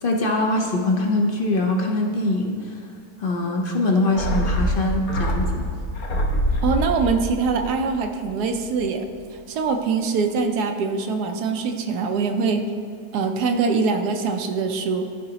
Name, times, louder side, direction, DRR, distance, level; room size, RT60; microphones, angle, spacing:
voice 1, 0.0-2.8 3.2-5.6, left 2 dB, 45° left, 1 dB, 0.7 m, -23 dB
sound 1, 4.2-8.8 9.0-9.1, equal, 65° left, 1.4 m, -25 dB
voice 2, 6.6-9.0 9.5-12.6 13.1-15.1, right 4 dB, 75° right, 6 dB, 1.2 m, -23 dB
13.5 x 5.0 x 2.8 m, 2.2 s
omnidirectional pair, 1.7 m